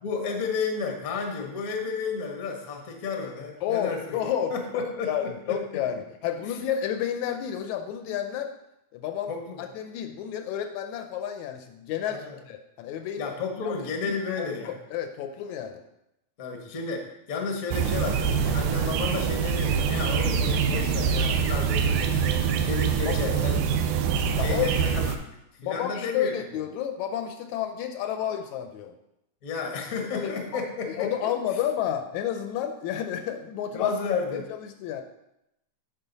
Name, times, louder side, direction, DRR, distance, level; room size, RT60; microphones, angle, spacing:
voice 1, 0.0-4.2 4.5-5.6 6.4-6.6 9.3-9.6 12.1-12.4 13.2-14.7 16.4-23.7 24.4-25.1 25.6-26.3 29.4-31.1 33.7-34.4, left 5 dB, 50° left, 2 dB, 1.0 m, -32 dB
voice 2, 3.6-8.5 8.9-9.3 9.6-13.3 13.7-13.8 14.1-15.8 23.1-23.6 24.4-24.7 25.6-29.0 30.0-30.6 30.9-33.9 34.3-34.4 34.8-35.0, left 9 dB, 80° left, 6 dB, 1.9 m, -31 dB
sound 1, 17.7-25.2, right 7 dB, 90° right, 2.2 m, -25 dB
9.4 x 6.1 x 4.0 m, 0.84 s
omnidirectional pair, 3.5 m